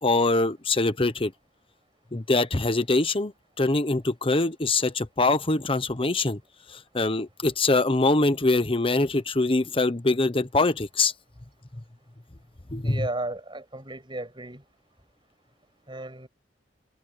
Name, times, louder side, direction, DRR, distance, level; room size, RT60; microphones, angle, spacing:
voice 1, 0.0-1.3 2.1-3.3 3.6-6.4 6.7-11.1 12.7-13.1, left 2 dB, 30° left, 1.1 m, -23 dB
voice 2, 12.8-14.6 15.9-16.3, right 2 dB, 25° right, 7.6 m, -34 dB
head